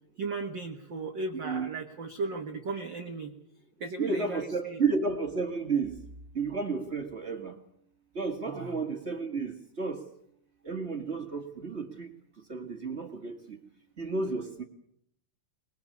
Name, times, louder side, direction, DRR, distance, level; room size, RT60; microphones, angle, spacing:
voice 1, 0.2-3.4 3.8-4.8 8.5-8.8, right 3 dB, 60° right, 5 dB, 1.2 m, -36 dB
voice 2, 4.0-6.0 6.3-7.5 8.1-10.1 10.6-13.6 14.0-14.6, right 4 dB, 35° right, 6 dB, 1.0 m, -32 dB
22.5 x 20.5 x 8.4 m, 0.70 s
omnidirectional pair, 3.9 m